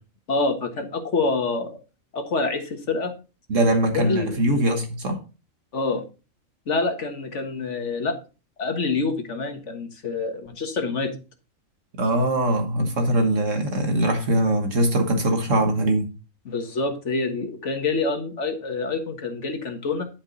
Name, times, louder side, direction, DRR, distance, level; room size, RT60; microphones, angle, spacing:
voice 1, 0.3-1.8 2.1-3.1 3.9-4.5 5.7-6.0 6.7-8.2 8.6-11.1 16.4-20.0, left 3 dB, 60° left, 5 dB, 1.7 m, -26 dB
voice 2, 3.5-5.2 12.0-16.1, right 1 dB, 70° right, 4 dB, 1.7 m, -22 dB
11.0 x 5.3 x 4.0 m, 0.33 s
omnidirectional pair, 1.4 m